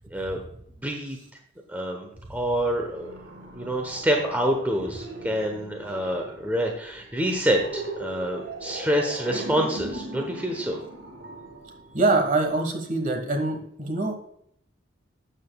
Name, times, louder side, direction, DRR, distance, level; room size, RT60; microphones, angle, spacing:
voice 1, 0.8-1.2 1.7-3.1 3.5-10.8, equal, 10° right, 2 dB, 1.0 m, -27 dB
sound 1, 2.7-12.5, right 2 dB, 70° right, 1.6 m, -39 dB
voice 2, 11.9-14.1, right 2 dB, 40° right, 4 dB, 1.4 m, -24 dB
12.5 x 7.6 x 2.3 m, 0.70 s
head